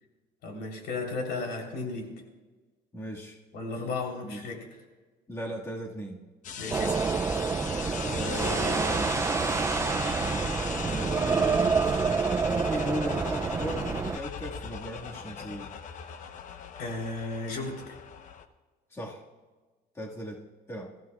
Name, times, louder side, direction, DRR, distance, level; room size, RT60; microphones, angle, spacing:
voice 1, 0.4-2.1 3.5-4.7 6.6-7.1 16.8-17.9, left 3 dB, 80° left, 1 dB, 3.7 m, -34 dB
voice 2, 2.9-3.4 4.2-4.5 5.3-6.2 8.1-9.1 10.9-11.8 12.4-15.7 18.9-19.2 19.9-20.4 20.7-20.9, equal, 15° left, -3 dB, 1.9 m, -36 dB
sound 1, 6.4-18.5, left 7 dB, 50° left, 1.0 m, -38 dB
sound 2, 6.7-14.2, right 5 dB, 15° right, 0.4 m, -28 dB
26.0 x 14.5 x 2.4 m, 1.3 s
cardioid pair, 140°, 17 cm